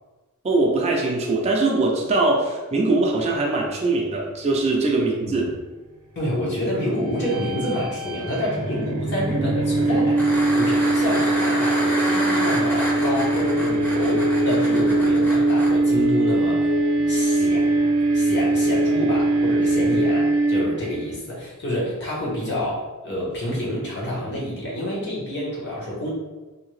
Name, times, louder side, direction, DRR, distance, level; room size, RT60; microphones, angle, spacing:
voice 1, 0.4-5.5, right 2 dB, 30° right, -1 dB, 0.4 m, -21 dB
voice 2, 6.1-16.7 17.1-17.7 18.1-26.1, equal, 50° left, -5 dB, 1.0 m, -28 dB
sound 1, 7.0-21.1, right 2 dB, 85° right, 0.5 m, -21 dB
sound 2, 10.2-15.7 18.4-18.5, equal, 10° left, 0.6 m, -28 dB
sound 3, 12.8-20.3, left 7 dB, 70° left, 0.7 m, -32 dB
2.8 x 2.7 x 3.1 m, 1.2 s
head